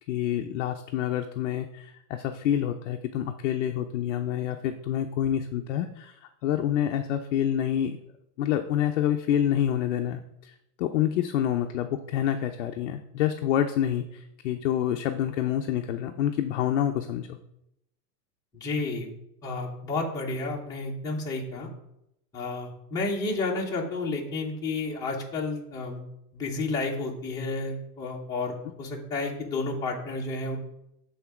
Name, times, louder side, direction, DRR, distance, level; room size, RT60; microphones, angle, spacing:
voice 1, 0.1-6.2 6.4-8.0 8.4-10.5 10.8-17.4, left 10 dB, 50° left, 6 dB, 0.5 m, -27 dB
voice 2, 18.5-19.1 19.4-21.7 22.3-26.0 26.3-30.6, left 3 dB, 5° left, -4 dB, 0.8 m, -31 dB
7.9 x 3.9 x 6.0 m, 0.82 s
supercardioid pair, 170°, 49 cm